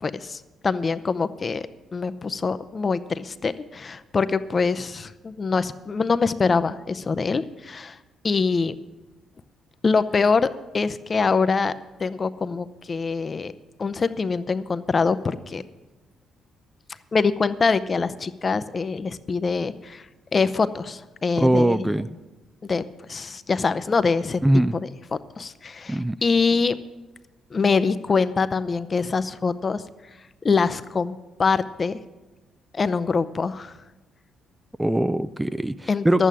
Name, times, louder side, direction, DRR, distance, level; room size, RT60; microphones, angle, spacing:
voice 1, 0.0-8.0 8.2-8.8 9.8-11.7 12.0-13.5 13.8-15.6 17.1-20.1 20.3-21.9 22.6-22.8 23.1-24.4 24.7-24.9 25.4-26.8 27.5-29.8 30.4-32.0 32.7-33.7 35.9-36.3, left 4 dB, 40° left, 13 dB, 0.6 m, -24 dB
voice 2, 21.4-22.1 24.4-24.8 25.9-26.2 34.8-36.2, right 1 dB, 10° right, 15 dB, 0.4 m, -21 dB
11.0 x 8.4 x 7.5 m, 1.1 s
supercardioid pair, 70°, 0 cm